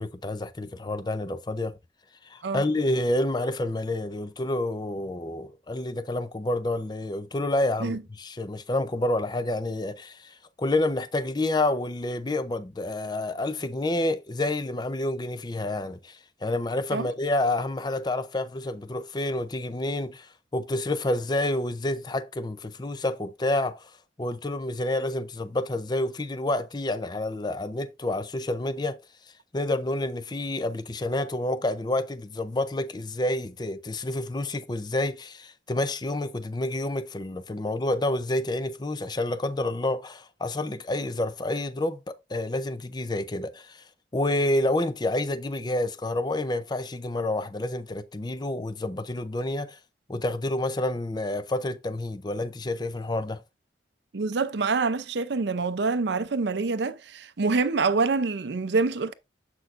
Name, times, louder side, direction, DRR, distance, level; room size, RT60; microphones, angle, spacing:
voice 1, 0.0-1.7 2.2-23.9 24.2-29.0 29.5-43.8 44.1-49.8 50.1-53.4, left 1 dB, 25° left, 0.5 m, -29 dB
voice 2, 54.1-59.1, right 4 dB, 65° right, 0.6 m, -26 dB
7.7 x 6.2 x 2.5 m
head